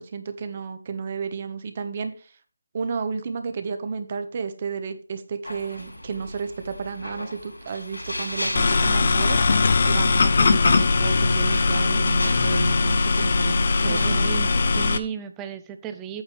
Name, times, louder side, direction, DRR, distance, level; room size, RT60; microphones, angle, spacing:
voice 1, 0.0-2.3 2.7-14.7, right 5 dB, 35° right, 8 dB, 1.4 m, -32 dB
sound 1, 5.4-14.1, left 1 dB, 90° left, 4.5 m, -36 dB
sound 2, 8.6-15.0, left 4 dB, 50° left, 0.8 m, -20 dB
voice 2, 13.9-16.2, right 8 dB, 10° right, 8 dB, 0.8 m, -35 dB
8.8 x 8.4 x 3.4 m, 0.38 s
figure-of-eight pair, 160°, 0 cm